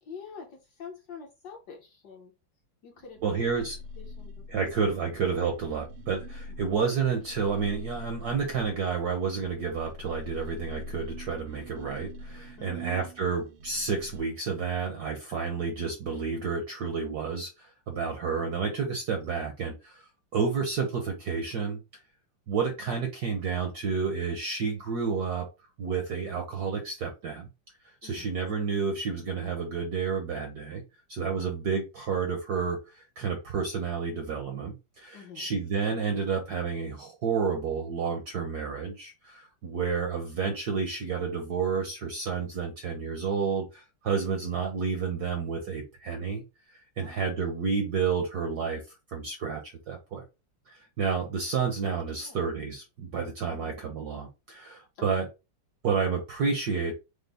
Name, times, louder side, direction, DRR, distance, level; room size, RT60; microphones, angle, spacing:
voice 1, 0.0-2.3 2.8-3.6 4.0-4.7 6.5-6.7 12.6-12.9 28.0-28.3 31.3-31.5 35.1-35.5 44.2-44.4 47.0-47.5 52.2-52.4 53.4-53.7 54.9-55.3, left 6 dB, 65° left, 1 dB, 1.1 m, -47 dB
sound 1, 3.0-9.0 9.4-14.2, left 1 dB, 90° right, 1.6 m, -44 dB
voice 2, 3.2-3.8 4.5-20.1 20.3-22.0 22.5-25.5 25.8-27.5 28.0-30.8 31.1-48.8 49.1-50.2 50.7-55.3 55.8-56.9, right 5 dB, 70° right, 3 dB, 0.9 m, -30 dB
5.0 x 2.0 x 3.3 m, 0.27 s
omnidirectional pair, 2.4 m